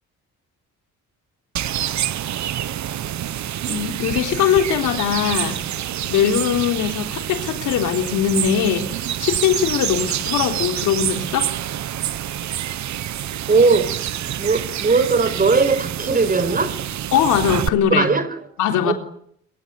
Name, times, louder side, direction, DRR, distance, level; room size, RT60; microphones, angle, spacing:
sound 1, 1.6-17.7, right 11 dB, 65° right, 1.3 m, -27 dB
voice 1, 3.7-5.6 6.1-8.9 9.2-11.5 17.1-18.1 18.6-18.9, left 8 dB, 90° left, 3.8 m, -20 dB
voice 2, 13.5-16.8 18.0-18.2 18.8-18.9, right 4 dB, 30° right, 5.2 m, -19 dB
27.0 x 23.5 x 8.4 m
cardioid pair, 90°, 30 cm